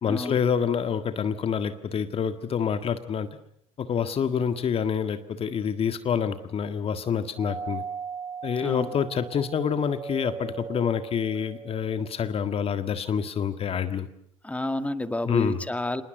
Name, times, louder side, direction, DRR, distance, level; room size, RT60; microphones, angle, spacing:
voice 1, 0.0-3.3 3.8-7.8 8.4-14.1 15.3-15.6, left 7 dB, 35° left, 10 dB, 1.7 m, -27 dB
Doorbell, 7.4-12.2, right 6 dB, 20° right, 2.8 m, -38 dB
voice 2, 8.6-9.0 14.4-16.0, left 1 dB, 10° left, 10 dB, 2.0 m, -30 dB
27.0 x 20.5 x 7.8 m, 0.70 s
hypercardioid pair, 75°, 17 cm